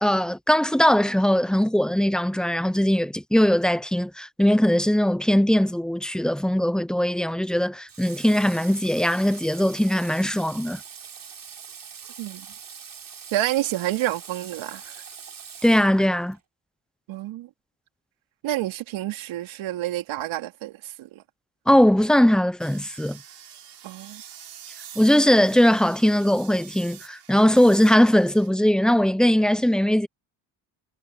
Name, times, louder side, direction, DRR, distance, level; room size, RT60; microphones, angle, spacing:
voice 1, 0.0-10.8 15.6-16.4 21.7-23.2 25.0-30.1, equal, ahead, 0.8 m, -20 dB
Water / Water tap faucet, 7.9-16.4, right 7 dB, 45° right, 3.9 m, -43 dB
voice 2, 13.3-14.9 17.1-17.5 18.4-21.2 23.8-24.2, right 14 dB, 75° right, 3.2 m, -29 dB
sound 1, 22.6-28.5, right 9 dB, 60° right, 7.4 m, -46 dB
supercardioid pair, 75°, 47 cm